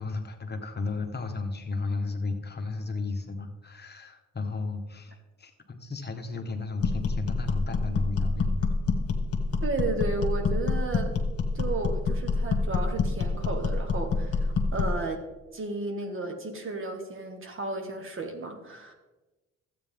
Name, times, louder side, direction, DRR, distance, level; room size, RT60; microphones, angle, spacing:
voice 1, 0.0-8.6, left 3 dB, 35° left, 5 dB, 1.2 m, -34 dB
sound 1, 6.8-15.0, left 4 dB, 50° left, 1.6 m, -27 dB
voice 2, 9.6-11.2 11.5-15.3 15.5-18.9, right 3 dB, 45° right, 4 dB, 1.7 m, -33 dB
12.5 x 8.5 x 3.6 m, 1.1 s
cardioid pair, 90°, 30 cm